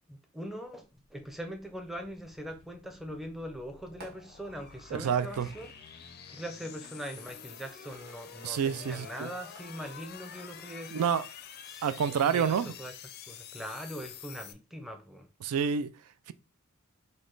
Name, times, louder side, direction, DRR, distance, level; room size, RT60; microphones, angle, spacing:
voice 1, 0.1-5.7 6.3-11.0 11.7-12.9 13.3-15.3, equal, ahead, 0.6 m, -42 dB
sound 1, 0.9-14.5, left 8 dB, 45° left, 0.4 m, -48 dB
Fireworks, 2.5-2.9 4.0-9.0 9.6-10.9, right 1 dB, 50° right, 1.4 m, -57 dB
voice 2, 4.9-5.5 8.4-9.3 10.9-11.3 11.8-12.7 15.4-15.9 16.3-16.4, right 7 dB, 80° right, 0.3 m, -28 dB
5.1 x 2.2 x 3.8 m
head